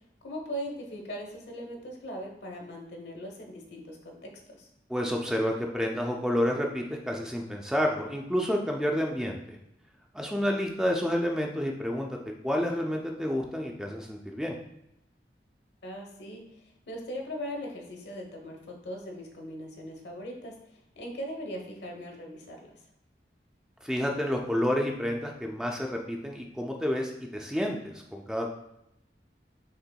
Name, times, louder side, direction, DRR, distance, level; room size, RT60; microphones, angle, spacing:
voice 1, 0.2-4.7 15.8-22.7, equal, 80° left, 1 dB, 1.0 m, -40 dB
voice 2, 4.9-9.6 10.1-12.1 12.4-14.6 23.8-28.5, equal, 5° right, 1 dB, 0.3 m, -29 dB
5.5 x 3.4 x 2.2 m, 0.81 s
head